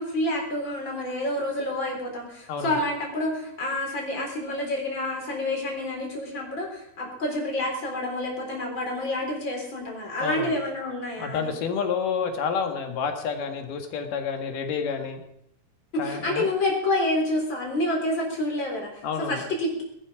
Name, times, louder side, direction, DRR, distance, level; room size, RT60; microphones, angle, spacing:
voice 1, 0.0-11.5 15.9-19.8, left 1 dB, 35° left, 0 dB, 4.5 m, -28 dB
voice 2, 2.5-2.8 10.2-10.5 11.2-15.2 16.0-16.5 19.0-19.4, left 6 dB, 80° left, 5 dB, 3.3 m, -29 dB
19.5 x 12.0 x 5.0 m, 0.75 s
omnidirectional pair, 3.8 m